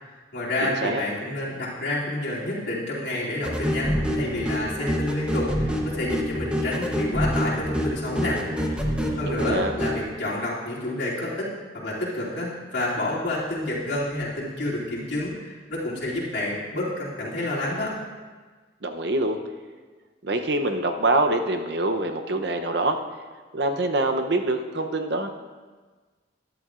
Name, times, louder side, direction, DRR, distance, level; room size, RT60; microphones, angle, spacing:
voice 1, 0.0-8.4 9.2-11.5 11.7-17.9, left 1 dB, 65° left, -8 dB, 2.7 m, -29 dB
voice 2, 0.6-1.0 9.2-9.7 18.8-19.4 20.2-23.0 23.5-25.3, right 2 dB, 60° right, 6 dB, 0.7 m, -25 dB
sound 1, 3.4-10.0, equal, 5° right, 0.9 m, -27 dB
13.5 x 10.5 x 2.5 m, 1.4 s
head